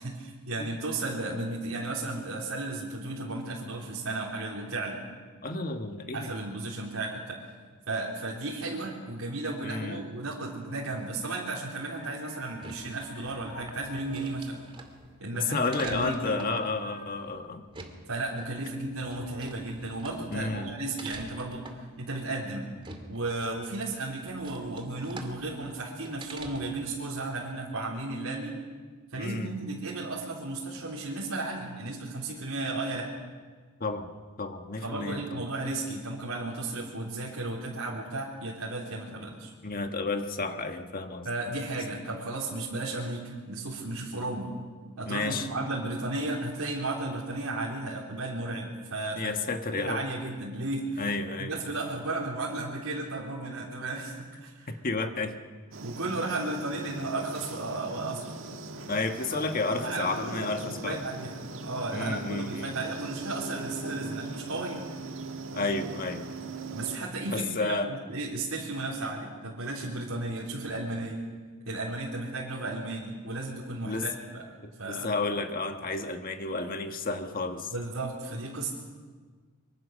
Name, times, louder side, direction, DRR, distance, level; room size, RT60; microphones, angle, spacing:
voice 1, 0.0-5.0 6.1-7.4 7.9-14.6 15.2-16.6 18.1-22.7 23.1-28.6 29.1-33.1 34.8-39.5 41.2-44.5 45.0-49.4 49.8-51.1 51.4-54.7 55.8-58.3 59.3-59.4 59.7-64.8 66.7-71.2 71.7-74.4 74.8-75.1 77.7-78.7, right 2 dB, 85° right, -5 dB, 3.7 m, -34 dB
voice 2, 5.4-6.3 9.6-10.0 15.3-17.6 20.3-20.7 29.2-29.5 33.8-34.1 34.4-35.4 39.6-41.3 45.1-45.5 49.1-50.0 51.0-51.5 54.7-55.4 58.9-61.0 61.9-62.8 65.5-66.3 67.3-67.9 73.8-74.1 74.6-77.7, left 3 dB, 40° left, 6 dB, 1.5 m, -31 dB
sound 1, 11.8-17.0, left 2 dB, 60° left, 4.6 m, -51 dB
sound 2, 12.4-26.9, right 2 dB, 25° right, 2.3 m, -48 dB
sound 3, 55.7-67.0, right 3 dB, 65° right, 1.8 m, -40 dB
24.5 x 24.0 x 6.5 m, 1.5 s
head